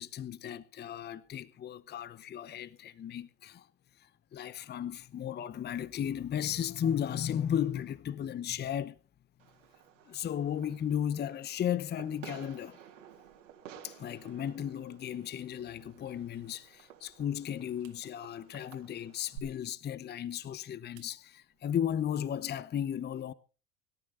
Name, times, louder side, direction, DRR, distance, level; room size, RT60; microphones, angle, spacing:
voice 1, 0.0-3.7 4.0-9.0 10.1-12.8 13.8-23.3, left 9 dB, 25° left, 0.8 m, -35 dB
Fireworks, 9.4-19.4, right 10 dB, 80° right, 3.7 m, -53 dB
sound 1, 13.0-13.7 14.0-14.3 14.8-16.9 17.3-17.4 17.8-18.0 18.6-18.7 19.2-19.3 19.6-20.4 21.0-21.1 21.5-22.4, right 12 dB, 55° right, 2.8 m, -64 dB
25.0 x 13.5 x 2.5 m
hypercardioid pair, 75°, 37 cm